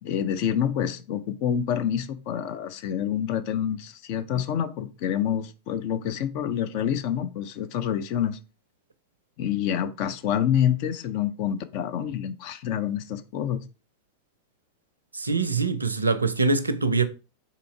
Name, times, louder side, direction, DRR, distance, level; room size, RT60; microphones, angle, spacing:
voice 1, 0.0-8.4 9.4-13.6, left 9 dB, 45° left, 0.4 m, -27 dB
voice 2, 15.1-17.0, right 3 dB, 80° right, 0.4 m, -24 dB
3.7 x 2.8 x 4.4 m
figure-of-eight pair, 90°, 0 cm